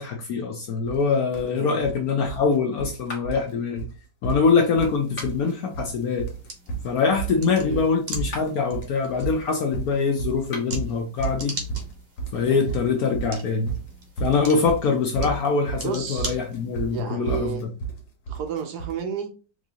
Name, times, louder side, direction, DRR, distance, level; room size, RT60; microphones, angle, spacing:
voice 1, 0.0-3.9 4.2-6.3 6.8-11.6 12.3-13.8 14.2-17.6, left 5 dB, 65° left, 0.9 m, -24 dB
sound 1, 0.9-1.0 1.3-2.0 2.3-3.0 3.2-3.5 3.8-3.9 4.2-5.0 5.2-5.9 6.2-19.0, right 6 dB, 80° left, 1.7 m, -32 dB
sound 2, 3.0-3.6 5.0-5.6 8.2-8.7 10.4-10.9, left 2 dB, 40° left, 1.3 m, -39 dB
sound 3, 4.7-17.0, right 1 dB, 45° right, 0.8 m, -40 dB
voice 2, 15.8-16.4 16.9-17.7 18.3-19.3, right 7 dB, 70° right, 1.1 m, -31 dB
4.7 x 2.6 x 2.7 m
omnidirectional pair, 2.0 m